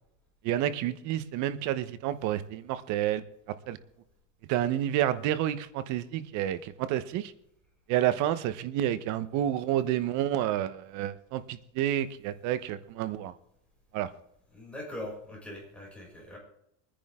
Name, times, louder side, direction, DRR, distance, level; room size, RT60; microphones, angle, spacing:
voice 1, 0.4-3.2 3.7-3.8 4.5-7.3 7.9-13.3 13.9-14.1, right 12 dB, 50° right, 1.1 m, -29 dB
voice 2, 14.5-16.4, left 1 dB, 5° left, 6.6 m, -41 dB
24.0 x 10.0 x 3.7 m
supercardioid pair, 135°, 38 cm